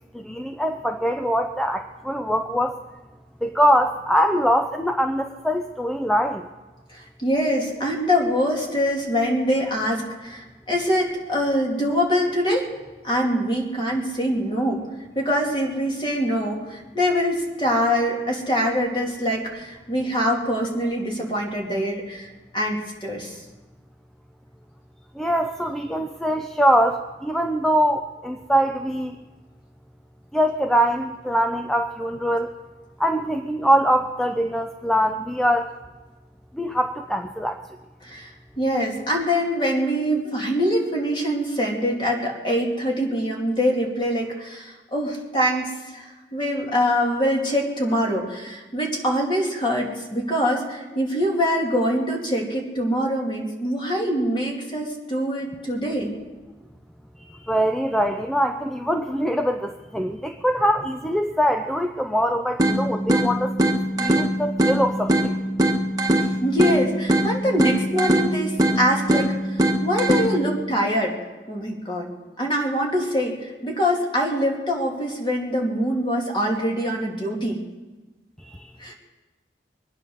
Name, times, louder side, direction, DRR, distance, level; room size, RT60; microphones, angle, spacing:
voice 1, 0.1-2.8 3.4-6.5 25.2-29.2 30.3-32.5 33.0-35.7 36.5-37.6 57.2-63.5 64.0-65.4 78.4-78.7, equal, 5° left, 5 dB, 0.5 m, -23 dB
voice 2, 6.9-12.7 13.0-14.8 15.1-23.4 38.0-38.3 38.6-56.1 66.1-71.2 71.5-72.1 72.4-77.6 78.8-78.9, equal, 30° left, -1 dB, 2.8 m, -24 dB
sound 1, 62.6-70.6, right 1 dB, 20° right, 1.4 m, -22 dB
23.5 x 9.6 x 6.4 m, 1.2 s
head